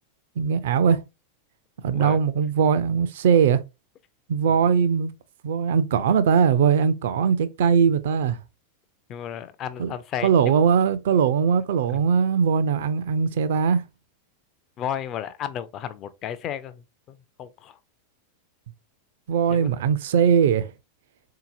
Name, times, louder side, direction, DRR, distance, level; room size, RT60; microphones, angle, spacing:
voice 1, 0.4-1.0 1.8-3.6 4.3-5.1 5.4-8.4 9.8-9.9 10.2-13.9 19.3-20.7, right 7 dB, 55° right, 0.4 m, -20 dB
voice 2, 1.8-2.2 9.1-10.6 14.8-17.8 19.5-19.7, left 9 dB, 35° left, 0.4 m, -34 dB
3.8 x 2.8 x 2.5 m
figure-of-eight pair, 90°, 0 cm